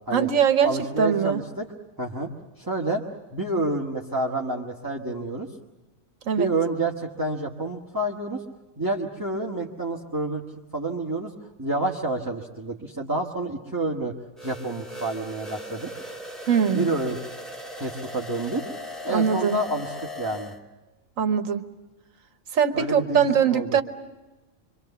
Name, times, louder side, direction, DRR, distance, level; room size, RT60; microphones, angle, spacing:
voice 1, 0.1-0.7 1.0-1.4 6.3-6.5 16.5-16.9 19.1-19.6 21.2-21.6 22.5-23.8, right 7 dB, 75° right, 9 dB, 1.6 m, -21 dB
voice 2, 0.6-1.7 2.0-2.3 2.6-3.0 3.3-5.5 6.4-8.4 8.8-10.4 10.7-11.3 11.6-14.1 14.4-15.9 16.7-17.2 17.8-18.6 19.0-20.5 22.7-23.3 23.5-23.7, right 2 dB, 15° right, -2 dB, 1.6 m, -28 dB
sound 1, 14.4-20.6, left 1 dB, ahead, 2.1 m, -38 dB
26.0 x 25.0 x 7.0 m, 1.1 s
omnidirectional pair, 1.4 m